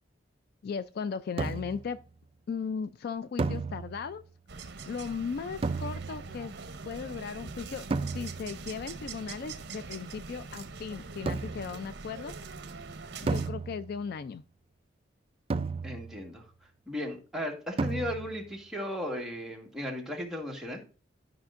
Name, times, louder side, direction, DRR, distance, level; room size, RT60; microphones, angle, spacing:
voice 1, 0.6-2.0 2.5-4.2 4.9-6.5 6.8-7.9 8.1-12.3 13.2-14.4, left 6 dB, 55° left, 0.3 m, -37 dB
sound 1, 1.4-1.9 3.4-4.2 5.6-6.4 7.9-8.6 11.3-11.8 13.3-14.1 15.5-16.3 17.8-18.5, right 3 dB, 30° right, 0.3 m, -33 dB
sound 2, 4.5-13.5, right 4 dB, 65° right, 0.8 m, -43 dB
voice 2, 15.8-16.4 16.9-20.8, left 1 dB, 5° right, 1.4 m, -36 dB
12.0 x 5.2 x 2.5 m
head